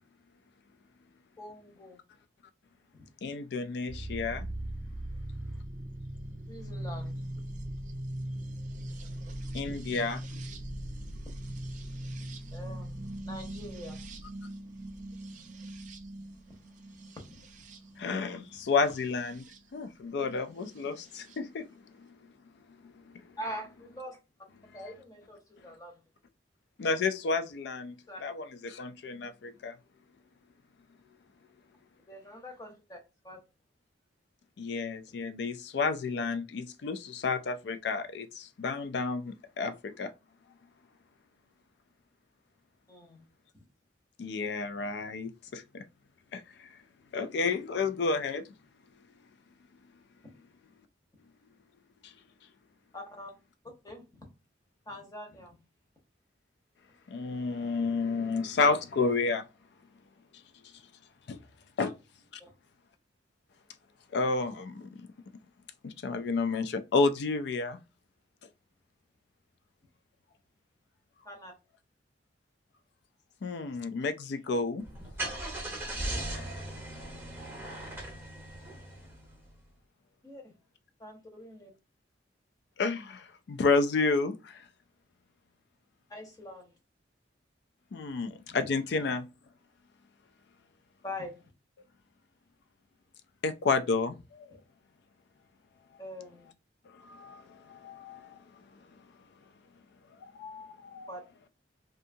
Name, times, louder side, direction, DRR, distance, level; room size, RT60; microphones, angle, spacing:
voice 1, 1.4-2.0 2.9-3.1 6.5-7.4 9.6-9.8 12.5-14.0 16.5-16.6 16.9-17.9 23.4-24.2 24.7-26.0 28.1-28.2 32.1-33.4 42.9-43.2 52.9-53.3 53.8-54.2 54.9-55.6 61.8-61.9 62.4-62.5 71.2-71.5 77.1-77.3 80.2-80.5 81.0-81.7 86.1-86.7 88.4-88.6 88.9-89.0 91.0-91.3 96.0-96.5 101.1-101.2, left 1 dB, 20° left, 0.8 m, -44 dB
voice 2, 3.2-4.5 9.5-10.2 18.0-19.4 19.7-21.7 22.0-22.1 22.8-22.9 26.8-27.9 28.2-29.7 34.6-40.1 44.2-45.8 46.3-46.7 47.1-48.5 52.0-52.1 57.1-59.4 61.3-61.4 61.8-61.9 64.1-64.9 65.8-67.8 73.4-74.8 82.8-84.6 87.9-89.2 93.4-94.5 97.0-98.4 100.2-101.1, left 4 dB, 65° left, 0.4 m, -31 dB
sound 1, 3.9-19.6 20.8-21.4, right 1 dB, 45° right, 0.4 m, -40 dB
Car / Engine starting, 74.8-79.5, right 1 dB, 15° right, 0.7 m, -38 dB
2.7 x 2.4 x 2.6 m
head